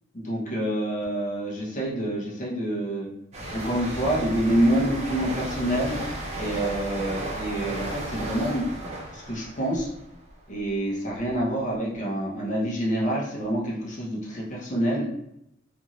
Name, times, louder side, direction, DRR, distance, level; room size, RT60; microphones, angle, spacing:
voice 1, 0.1-3.1 3.5-6.0 6.4-8.6 9.1-9.9 10.5-15.1, right 1 dB, 40° left, -3 dB, 0.7 m, -27 dB
sound 1, 3.3-10.8 11.1-11.4, right 1 dB, 35° right, 0.5 m, -34 dB
2.6 x 2.5 x 2.9 m, 0.79 s
head